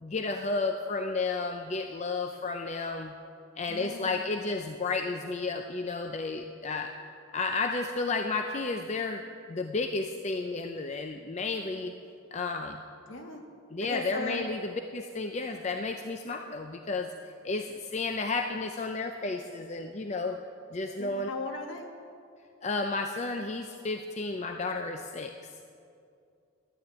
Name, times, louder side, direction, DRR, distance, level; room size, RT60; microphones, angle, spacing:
voice 1, 0.0-3.1 3.6-6.9 7.3-9.2 9.5-11.9 12.3-12.8 13.7-17.1 17.4-20.4 20.7-21.3 22.6-25.3, left 3 dB, 35° left, 5 dB, 0.5 m, -32 dB
voice 2, 3.7-4.2 13.1-13.4 13.8-14.5 21.0-21.9, left 2 dB, 65° left, 3 dB, 1.5 m, -37 dB
11.5 x 9.7 x 8.2 m, 2.4 s
head